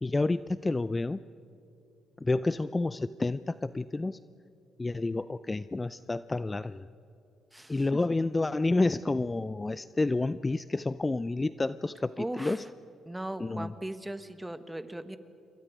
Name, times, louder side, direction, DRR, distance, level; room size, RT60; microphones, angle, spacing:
voice 1, 0.0-1.2 2.2-4.2 4.8-6.8 7.7-12.6 13.4-13.7, left 2 dB, 20° left, 15 dB, 0.4 m, -29 dB
voice 2, 7.5-7.8 12.2-12.6 13.1-15.2, right 1 dB, 10° right, 11 dB, 1.3 m, -38 dB
27.5 x 23.0 x 5.0 m, 2.7 s
cardioid pair, 90°, 0 cm